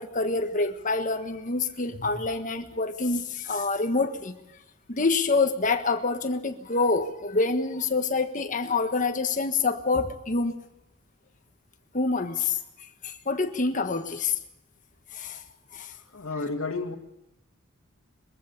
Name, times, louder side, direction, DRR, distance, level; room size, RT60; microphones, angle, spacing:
voice 1, 0.0-4.3 4.9-10.5 11.9-12.6 13.0-14.3 15.1-15.4 15.7-15.9, left 3 dB, 40° left, 1.4 m, -26 dB
voice 2, 16.1-17.0, left 3 dB, 70° left, 2.0 m, -31 dB
22.5 x 15.0 x 8.6 m
head